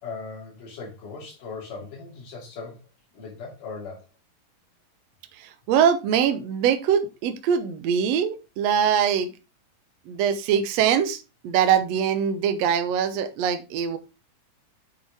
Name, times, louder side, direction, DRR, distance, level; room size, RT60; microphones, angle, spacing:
voice 1, 0.0-2.9 3.1-4.1, left 4 dB, 70° left, -3 dB, 4.1 m, -38 dB
voice 2, 5.4-9.3 10.1-14.0, right 8 dB, 70° right, 7 dB, 1.7 m, -23 dB
8.4 x 5.4 x 3.4 m, 0.27 s
omnidirectional pair, 3.9 m